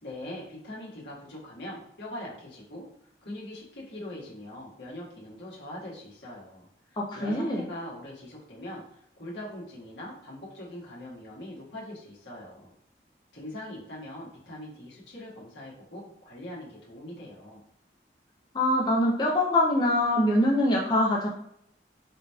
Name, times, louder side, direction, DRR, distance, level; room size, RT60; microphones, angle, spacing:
voice 1, 0.0-2.9 3.2-12.7 13.3-17.6, left 1 dB, 85° left, -6 dB, 1.4 m, -42 dB
voice 2, 7.0-7.6 18.5-21.3, left 1 dB, 25° left, -2 dB, 0.4 m, -24 dB
3.7 x 2.9 x 2.3 m, 0.70 s
head